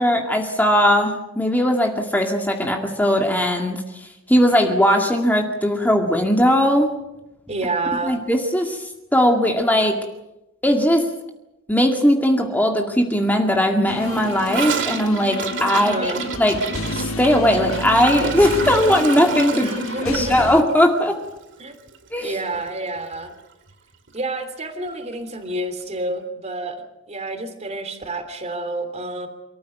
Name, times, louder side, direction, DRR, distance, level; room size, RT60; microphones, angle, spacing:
voice 1, 0.0-3.8 4.3-6.9 8.0-10.0 10.6-11.1 11.7-16.1 16.4-16.6 16.9-19.7 20.1-21.1 22.1-22.4, equal, 10° left, 2 dB, 2.2 m, -19 dB
voice 2, 7.5-8.1 15.7-16.2 19.5-20.5 21.6-21.7 22.2-23.3 24.1-26.8 27.1-29.3, right 2 dB, 35° right, 8 dB, 3.3 m, -28 dB
sound 1, 13.9-20.6, left 2 dB, 80° left, 1.6 m, -31 dB
Gurgling / Toilet flush, 14.0-22.3 22.5-22.7 23.0-23.4 23.7-23.8 24.1-24.2 25.1-25.2, right 6 dB, 60° right, 2.1 m, -30 dB
28.5 x 14.5 x 9.3 m, 0.94 s
head